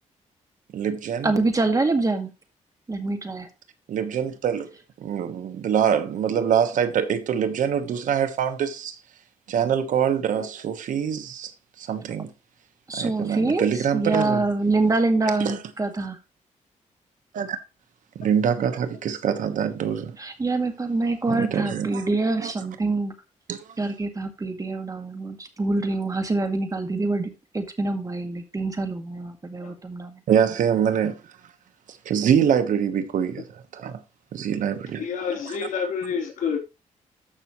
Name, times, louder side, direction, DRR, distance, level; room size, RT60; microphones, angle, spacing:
voice 1, 0.7-1.3 3.9-4.7 5.0-9.0 9.5-11.5 11.8-12.3 12.9-14.4 15.4-15.6 17.3-17.6 18.1-20.2 21.3-22.0 22.4-22.5 23.5-23.6 30.3-31.2 32.0-34.0 34.3-35.0 35.5-35.6, right 8 dB, 80° right, 1.3 m, -24 dB
voice 2, 1.2-2.3 2.9-3.5 12.9-16.2 20.2-23.1 23.8-30.2, right 3 dB, 25° right, 2.0 m, -25 dB
voice 3, 35.0-36.6, left 6 dB, 85° left, 3.8 m, -29 dB
13.5 x 5.9 x 3.1 m
cardioid pair, 100°, 13 cm